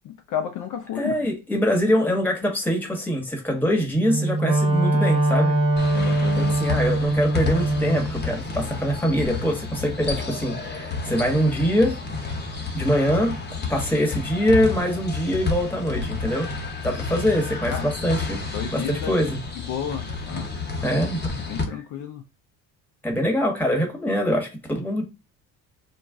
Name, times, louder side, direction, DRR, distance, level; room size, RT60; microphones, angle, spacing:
voice 1, 0.0-1.1 5.9-6.8 17.7-17.9 18.5-19.1 19.6-20.5 20.9-21.0 21.5-22.2, left 9 dB, 55° left, 0.5 m, -32 dB
voice 2, 1.0-5.5 6.4-12.0 12.7-16.5 16.8-18.4 18.7-19.4 20.8-21.3 23.0-25.0, equal, 5° left, 1.1 m, -23 dB
Wind instrument woodwind instrument, 4.0-8.1, right 2 dB, 70° right, 0.8 m, -22 dB
sound 1, 5.8-21.6, left 3 dB, 25° left, 0.9 m, -30 dB
2.3 x 2.2 x 3.5 m
supercardioid pair, 85°, 38 cm